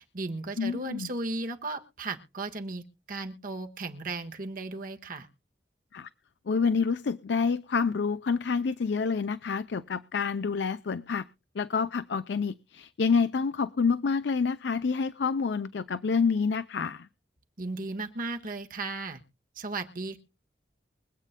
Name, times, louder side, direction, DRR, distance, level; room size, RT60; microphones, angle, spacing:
voice 1, 0.0-2.8 3.1-5.3 17.6-19.2 19.5-20.2, right 2 dB, 50° right, 5 dB, 1.4 m, -35 dB
voice 2, 0.6-1.1 5.9-6.1 6.5-11.3 11.5-17.1, left 5 dB, 80° left, 13 dB, 0.5 m, -28 dB
24.0 x 8.3 x 2.2 m, 0.32 s
head